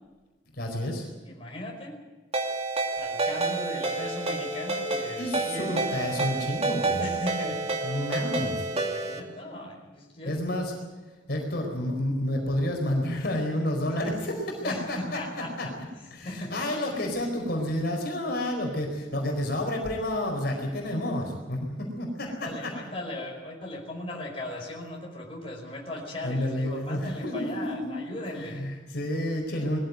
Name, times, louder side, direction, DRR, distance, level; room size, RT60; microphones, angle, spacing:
voice 1, 0.5-1.1 5.2-7.1 7.8-8.7 10.3-10.7 11.3-15.7 16.1-22.7 26.2-27.9 28.4-29.8, left 1 dB, 55° left, 1 dB, 4.5 m, -30 dB
voice 2, 1.2-2.0 3.0-5.8 6.2-6.3 7.0-7.8 8.1-10.3 14.6-15.7 16.2-16.5 22.3-28.6, left 1 dB, 30° left, -1 dB, 4.9 m, -38 dB
Ringtone, 2.3-9.2, right 3 dB, 30° right, 2.6 m, -29 dB
21.5 x 15.5 x 9.4 m, 1.2 s
head